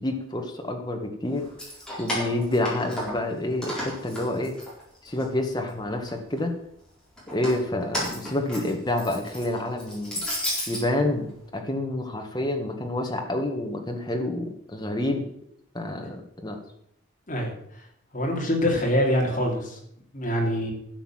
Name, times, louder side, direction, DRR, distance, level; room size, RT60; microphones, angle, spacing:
voice 1, 0.0-1.5 2.0-4.5 5.0-6.5 7.3-10.2 10.7-15.2 15.7-16.6, left 1 dB, 20° left, 3 dB, 1.7 m, -28 dB
Keys jangling, 1.4-3.3 3.6-5.2 5.6-6.4 7.2-10.8, equal, 5° left, 4.2 m, -33 dB
voice 2, 18.1-19.8 20.1-20.7, equal, 40° left, 0 dB, 3.0 m, -24 dB
12.0 x 7.0 x 7.4 m, 0.72 s
head